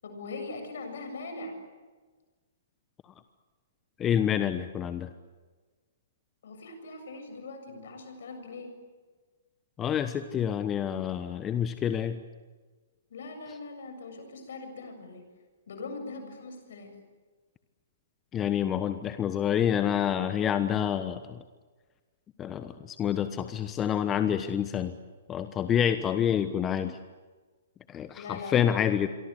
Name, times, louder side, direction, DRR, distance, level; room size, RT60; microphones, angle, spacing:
voice 1, 0.0-1.6 6.4-8.7 13.1-15.2 15.7-16.9 28.2-28.9, left 3 dB, 65° left, 6 dB, 7.4 m, -41 dB
voice 2, 4.0-5.1 9.8-12.2 18.3-21.4 22.4-25.0 25.3-27.0 27.9-29.1, left 9 dB, 20° left, 10 dB, 1.2 m, -28 dB
27.5 x 24.0 x 8.3 m, 1.4 s
hypercardioid pair, 120°, 0 cm